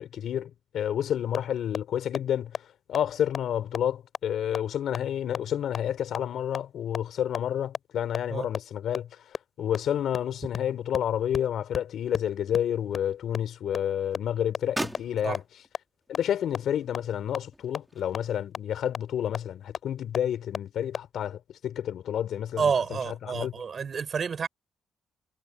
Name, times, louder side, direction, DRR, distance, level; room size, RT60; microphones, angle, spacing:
voice 1, 0.0-2.5 2.9-9.1 9.6-15.4 16.1-23.5, left 10 dB, 70° left, 4.6 m, -29 dB
sound 1, 1.3-1.4 1.7-1.8 2.1-2.2 2.5-2.6 2.9-3.0 3.3-3.4 3.7-3.8 4.1-4.2 4.5-4.6 4.9-5.0 5.3-5.4 5.7-5.8 6.1-6.2 6.5-6.6 6.9-7.0 7.3-7.4 7.7-7.8 8.1-8.2 8.5-8.6 8.9-9.0 9.3-9.4 9.7-9.8 10.1-10.2 10.5-10.6 10.9-11.0 11.3-11.4 11.7-11.8 12.1-12.2 12.5-12.6 12.9-13.0 13.3-13.4 13.7-13.8 14.1-14.2 14.5-14.6 14.9-15.0 15.3-15.4 15.7-15.8 16.1-16.2 16.5-16.6 16.9-17.0 17.3-17.4 17.7-17.8 18.1-18.2 18.5-18.6 18.9-19.0 19.3-19.4 19.7-19.8 20.1-20.2 20.5-20.6 20.9-21.0, left 5 dB, 40° left, 6.9 m, -30 dB
sound 2, 12.6-13.5 13.9-21.1, right 1 dB, 5° right, 6.2 m, -42 dB
voice 2, 22.6-24.5, right 6 dB, 45° right, 5.7 m, -29 dB
cardioid pair, 90°, 0 cm